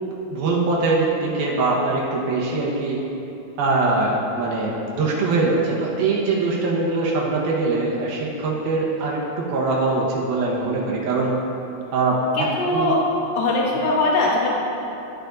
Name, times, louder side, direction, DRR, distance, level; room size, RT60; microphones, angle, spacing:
voice 1, 0.3-3.0 3.6-11.4 11.9-12.9, right 3 dB, 90° right, -4 dB, 3.1 m, -22 dB
voice 2, 12.3-13.0 13.3-14.5, left 2 dB, 80° left, -3 dB, 1.3 m, -21 dB
13.0 x 7.0 x 2.6 m, 2.9 s
omnidirectional pair, 4.2 m